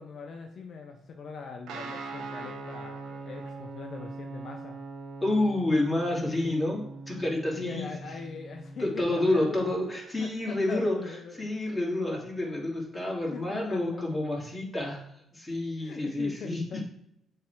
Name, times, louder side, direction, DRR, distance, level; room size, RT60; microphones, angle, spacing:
voice 1, 0.0-4.8 7.6-9.7 10.2-11.5 12.9-14.1 15.8-16.9, left 5 dB, 55° left, 3 dB, 0.7 m, -42 dB
Guitar, 1.7-9.7, right 3 dB, 85° right, 0.9 m, -42 dB
voice 2, 5.2-7.9 8.8-11.0 11.3-16.9, left 1 dB, 10° left, -3 dB, 2.4 m, -29 dB
7.1 x 3.4 x 4.5 m, 0.76 s
cardioid pair, 90°, 0 cm